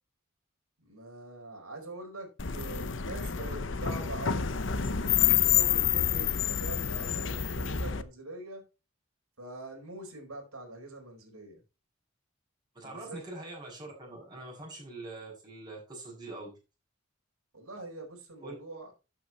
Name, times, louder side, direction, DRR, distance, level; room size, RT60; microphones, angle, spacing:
voice 1, 0.8-4.5 4.8-8.7 9.4-11.6 12.8-13.2 17.5-18.9, right 2 dB, 90° right, 2 dB, 4.6 m, -44 dB
sound 1, 2.4-8.0, left 9 dB, 60° left, 0.8 m, -28 dB
voice 2, 12.8-16.5 18.4-18.6, right 2 dB, 20° right, -2 dB, 6.9 m, -43 dB
13.0 x 8.4 x 3.0 m, 0.29 s
head